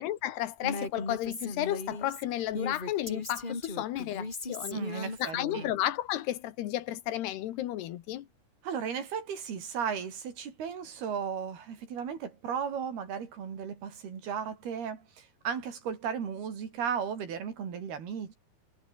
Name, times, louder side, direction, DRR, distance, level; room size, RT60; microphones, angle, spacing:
voice 1, 0.0-8.3, left 13 dB, 85° left, 3.4 m, -33 dB
Female speech woman speaking, 0.6-5.7, left 2 dB, 15° left, 2.6 m, -37 dB
voice 2, 4.7-5.7 8.6-18.4, right 7 dB, 75° right, 5.6 m, -35 dB
omnidirectional pair, 4.6 m